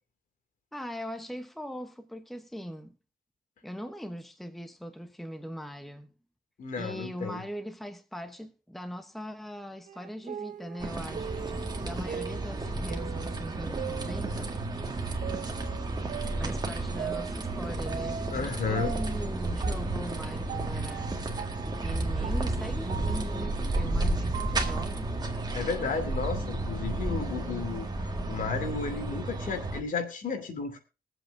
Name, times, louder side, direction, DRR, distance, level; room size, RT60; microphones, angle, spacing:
voice 1, 0.7-3.0 3.6-6.1 6.8-14.5 16.4-21.1 21.6-25.2, equal, ahead, 0.9 m, -40 dB
voice 2, 6.6-7.4 18.3-18.9 25.5-30.8, left 5 dB, 65° left, 2.6 m, -33 dB
sound 1, 9.9-14.7 15.2-18.5 18.7-24.8, right 8 dB, 55° right, 0.7 m, -41 dB
sound 2, 10.8-29.8, right 2 dB, 30° right, 1.8 m, -32 dB
22.5 x 7.9 x 2.7 m
wide cardioid pair, 120°, 15 cm